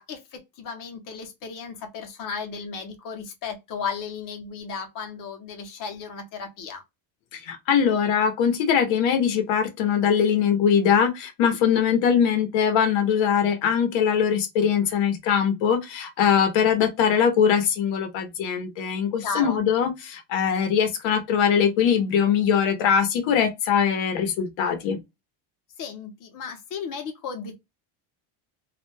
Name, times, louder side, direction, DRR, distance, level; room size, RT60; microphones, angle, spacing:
voice 1, 0.0-6.8 19.2-19.7 25.8-27.6, left 5 dB, 45° left, 0.8 m, -35 dB
voice 2, 7.3-25.0, left 7 dB, 70° left, 0.9 m, -22 dB
2.4 x 2.2 x 3.2 m
cardioid pair, 160°, 47 cm